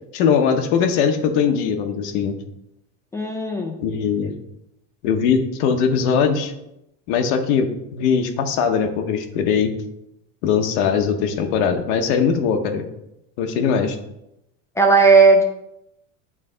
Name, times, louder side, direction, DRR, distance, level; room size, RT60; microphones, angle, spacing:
voice 1, 0.1-2.3 3.8-4.3 5.0-6.5 7.1-9.7 10.4-12.8 13.4-14.0, left 6 dB, 75° left, 5 dB, 0.9 m, -20 dB
voice 2, 3.1-3.8 14.8-15.4, right 4 dB, 10° left, 2 dB, 0.4 m, -15 dB
8.7 x 3.3 x 3.8 m, 0.84 s
cardioid pair, 155°, 34 cm